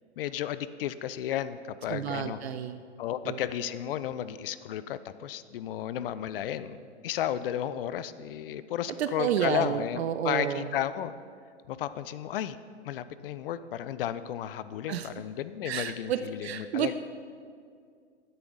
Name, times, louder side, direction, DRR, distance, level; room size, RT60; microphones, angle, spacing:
voice 1, 0.2-2.4 3.0-11.1 11.7-12.6 12.8-16.9, left 11 dB, 55° left, 14 dB, 0.5 m, -33 dB
voice 2, 1.9-2.8 3.3-3.4 9.0-10.7 14.9-15.1 15.7-16.9, right 9 dB, 65° right, 10 dB, 0.5 m, -30 dB
9.5 x 7.7 x 3.9 m, 2.2 s
hypercardioid pair, 125°, 35 cm